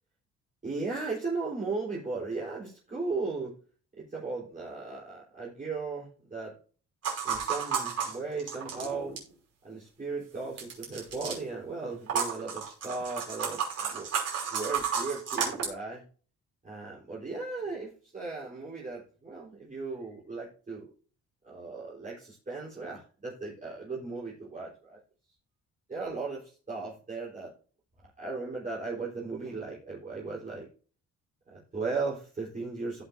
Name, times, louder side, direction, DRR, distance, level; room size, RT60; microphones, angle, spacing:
voice 1, 0.6-3.5 4.0-6.5 7.2-9.2 9.6-14.1 14.5-16.0 16.6-20.9 21.4-25.0 25.9-27.5 28.2-30.7 31.5-33.0, right 3 dB, 25° right, -5 dB, 3.9 m, -36 dB
sound 1, 7.0-9.3 10.6-11.4 12.1-15.7, right 6 dB, 55° right, 5.5 m, -32 dB
16.5 x 5.9 x 2.6 m, 0.39 s
cardioid pair, 90°, 30 cm